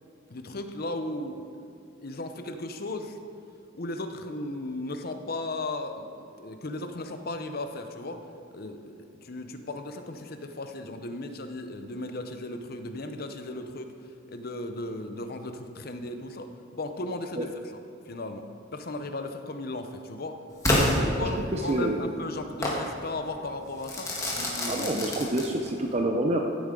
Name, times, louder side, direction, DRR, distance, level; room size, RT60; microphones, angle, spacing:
voice 1, 0.3-1.7 2.0-3.2 3.7-6.1 6.4-8.2 8.5-8.9 9.2-13.9 14.3-17.5 18.1-18.4 18.7-20.4 20.7-24.9, left 2 dB, 50° left, 7 dB, 0.7 m, -36 dB
Crackle / Fireworks, 20.6-21.8 22.6-22.9 23.8-25.8, left 1 dB, 15° left, 1.6 m, -27 dB
voice 2, 21.2-22.0 24.7-26.5, right 1 dB, 30° right, 2 dB, 0.6 m, -28 dB
15.0 x 8.2 x 3.8 m, 2.6 s
head